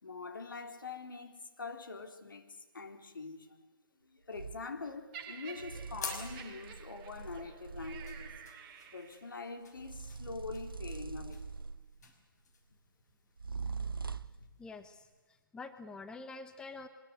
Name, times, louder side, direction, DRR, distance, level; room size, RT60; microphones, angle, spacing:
voice 1, 0.0-3.5 4.0-8.4 8.9-11.4 12.0-12.1 13.5-13.6, left 4 dB, 70° left, 3.8 m, -44 dB
sound 1, 4.3-4.7 5.6-8.5 9.8-12.0 13.4-14.5, right 5 dB, 80° right, 0.9 m, -43 dB
Laughter, 5.1-9.4 10.2-10.4, right 7 dB, 30° right, 2.9 m, -50 dB
sound 2, 5.2-15.4, left 5 dB, 50° left, 5.4 m, -52 dB
voice 2, 14.6-16.9, left 3 dB, 5° left, 1.1 m, -47 dB
24.0 x 21.5 x 8.2 m
figure-of-eight pair, 130°, 12 cm